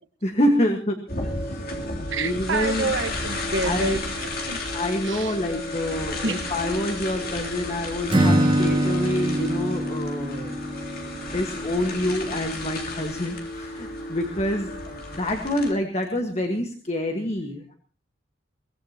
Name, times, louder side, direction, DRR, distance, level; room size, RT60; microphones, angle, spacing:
voice 1, 0.2-1.0 1.4-1.6 2.1-2.9 3.6-4.0 4.7-10.6 11.3-17.7, left 1 dB, 35° left, 1.6 m, -27 dB
sound 1, 1.1-15.7, left 1 dB, 50° left, 3.3 m, -32 dB
voice 2, 2.1-4.6 5.0-5.4 6.2-6.4, right 3 dB, 80° right, 1.4 m, -28 dB
Acoustic guitar / Strum, 8.1-12.0, right 1 dB, 30° right, 2.9 m, -24 dB
23.0 x 18.5 x 3.0 m
head